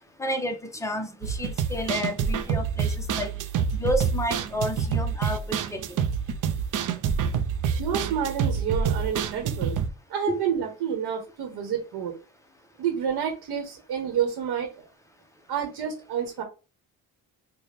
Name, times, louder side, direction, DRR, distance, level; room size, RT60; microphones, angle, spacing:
voice 1, 0.2-3.3 3.7-5.8 10.3-10.4, equal, 10° left, 6 dB, 0.5 m, -30 dB
sound 1, 1.2-9.9, right 6 dB, 55° right, 0.5 m, -27 dB
voice 2, 7.7-9.8 10.1-12.1 12.8-14.9 15.5-16.4, right 8 dB, 90° right, 3 dB, 1.0 m, -29 dB
4.1 x 2.2 x 3.2 m, 0.32 s
cardioid pair, 145°, 38 cm